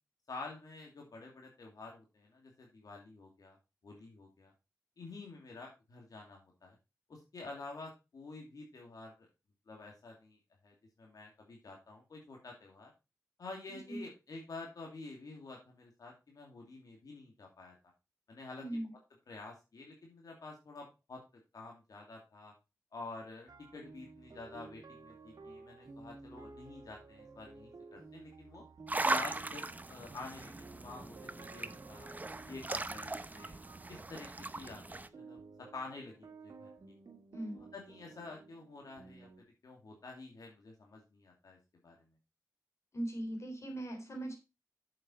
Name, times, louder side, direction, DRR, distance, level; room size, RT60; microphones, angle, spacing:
voice 1, 0.3-3.6 3.8-4.5 5.0-6.8 7.1-9.1 9.7-12.9 13.4-17.7 18.3-18.6 19.3-21.2 21.5-22.5 22.9-28.6 29.0-32.1 32.4-33.5 33.9-34.3 34.5-36.7 37.5-39.3 39.6-41.6 41.8-41.9, left 3 dB, 85° left, 0 dB, 2.5 m, -49 dB
voice 2, 13.7-14.0 18.6-18.9 37.3-37.6 42.9-44.3, right 1 dB, 50° left, 3 dB, 3.6 m, -40 dB
sound 1, 23.5-39.4, right 4 dB, 85° right, 1.7 m, -54 dB
sound 2, 28.9-35.1, right 2 dB, 25° right, 0.7 m, -39 dB
7.7 x 7.6 x 4.3 m, 0.26 s
wide cardioid pair, 85°, 6 cm